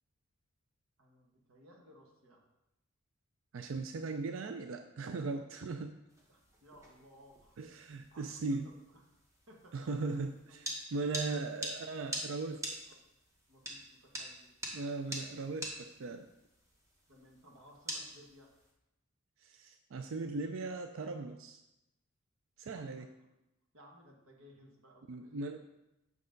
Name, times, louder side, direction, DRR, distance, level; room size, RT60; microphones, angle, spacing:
voice 1, 1.0-2.4 5.2-5.5 6.3-7.6 8.1-9.0 9.5-10.2 10.5-10.7 11.3-11.7 12.8-13.0 13.5-14.5 17.1-18.5 22.7-23.3 23.7-25.6, equal, 85° right, 0 dB, 1.6 m, -59 dB
voice 2, 3.5-6.0 7.6-8.7 9.7-10.3 10.9-12.6 14.7-16.3 19.4-21.6 22.6-23.1 25.1-25.6, right 3 dB, 65° right, 7 dB, 0.4 m, -38 dB
sound 1, 6.1-18.7, equal, 15° right, 1.2 m, -46 dB
7.8 x 6.1 x 3.9 m, 0.91 s
head